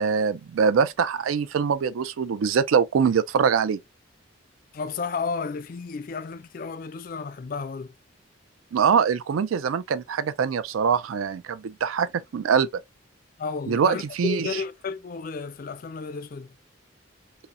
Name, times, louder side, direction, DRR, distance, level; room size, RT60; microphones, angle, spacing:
voice 1, 0.0-3.8 8.7-12.7 13.7-14.5, right 6 dB, 85° right, 0.4 m, -23 dB
voice 2, 4.7-7.9 13.4-16.5, left 5 dB, 45° left, 0.3 m, -32 dB
5.5 x 2.1 x 2.4 m
head